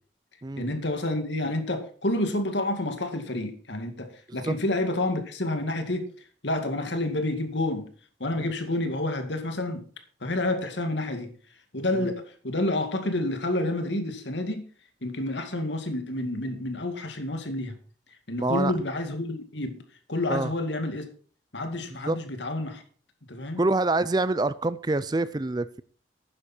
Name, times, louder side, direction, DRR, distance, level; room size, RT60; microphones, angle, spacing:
voice 1, 0.6-6.1 6.4-7.9 8.2-9.8 10.2-11.3 11.7-14.6 15.0-17.8 18.3-19.8 20.1-21.1 21.5-22.8 23.3-23.6, left 1 dB, 75° left, 7 dB, 2.2 m, -29 dB
voice 2, 18.4-18.7 20.3-20.5 22.0-22.2 23.6-25.8, right 2 dB, 20° right, 16 dB, 0.4 m, -26 dB
12.0 x 9.8 x 4.4 m, 0.43 s
head